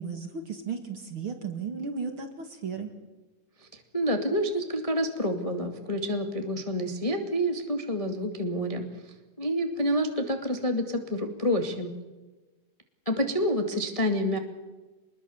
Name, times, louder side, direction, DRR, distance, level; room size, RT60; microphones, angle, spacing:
voice 1, 0.0-2.9, right 5 dB, 45° right, 6 dB, 2.3 m, -35 dB
voice 2, 3.9-8.9 9.4-11.9 13.0-14.4, equal, 15° left, 5 dB, 1.4 m, -28 dB
25.5 x 21.0 x 7.1 m, 1.2 s
omnidirectional pair, 4.1 m